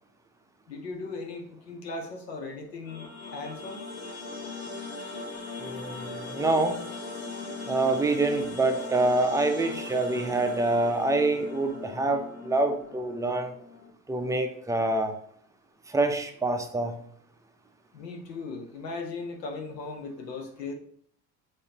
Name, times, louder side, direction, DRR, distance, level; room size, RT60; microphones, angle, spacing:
voice 1, 0.7-3.8 17.9-20.7, left 3 dB, 85° left, 3 dB, 0.9 m, -38 dB
sound 1, 2.8-13.9, left 3 dB, 60° left, 1.2 m, -39 dB
voice 2, 5.6-6.8 7.7-13.5 14.1-15.1 15.9-17.0, right 2 dB, 10° right, 5 dB, 0.4 m, -26 dB
4.9 x 3.0 x 2.8 m, 0.64 s
hypercardioid pair, 70°, 48 cm